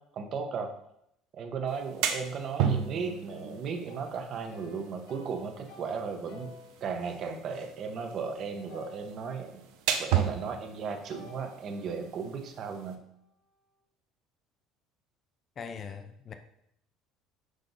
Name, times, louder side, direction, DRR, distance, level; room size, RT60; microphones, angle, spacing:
voice 1, 0.1-0.7 1.3-9.6 10.0-13.1, right 5 dB, 35° right, 6 dB, 0.8 m, -36 dB
sound 1, 1.7-12.9, right 8 dB, 65° right, 0.8 m, -35 dB
sound 2, 2.5-8.3 8.7-9.9 11.1-13.3, left 2 dB, 75° left, 1.5 m, -54 dB
voice 2, 15.6-16.3, left 6 dB, 25° left, 7 dB, 0.5 m, -41 dB
6.5 x 5.1 x 3.9 m, 0.75 s
cardioid pair, 170°, 0 cm